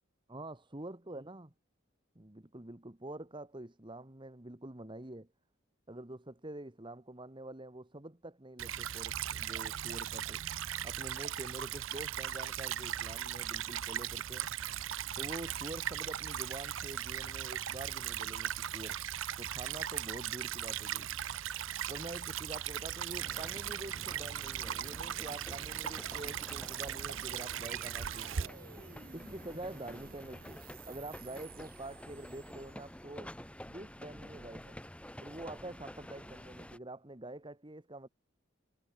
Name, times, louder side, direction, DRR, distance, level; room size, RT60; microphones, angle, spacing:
voice 1, 0.3-1.5 2.1-5.3 5.9-10.4 10.8-14.5 15.2-19.0 19.4-21.1 21.9-28.5 29.1-33.3 33.6-34.8 35.2-38.1, right 1 dB, 25° right, 1.5 m, -46 dB
Stream / Trickle dribble, 8.6-28.5, right 10 dB, 80° right, 0.6 m, -38 dB
sound 1, 23.1-36.8, equal, 5° left, 6.6 m, -50 dB
sound 2, 26.7-33.0, right 5 dB, 45° right, 3.8 m, -54 dB
head